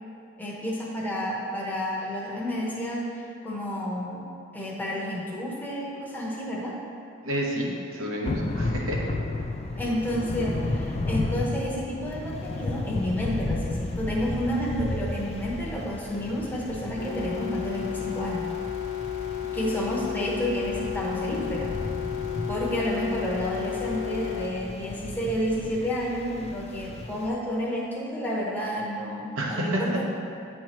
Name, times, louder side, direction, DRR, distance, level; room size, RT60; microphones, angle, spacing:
voice 1, 0.4-4.3 4.5-6.8 9.8-18.5 19.5-21.7 22.5-30.0, equal, 10° left, -5 dB, 0.9 m, -30 dB
voice 2, 7.2-9.0 29.4-30.0, right 1 dB, 80° right, -1 dB, 1.0 m, -29 dB
Thunder / Rain, 8.2-27.3, left 2 dB, 30° left, 0.3 m, -34 dB
sound 1, 17.0-24.5, left 10 dB, 55° left, 0.9 m, -33 dB
9.3 x 4.4 x 3.0 m, 2.4 s
head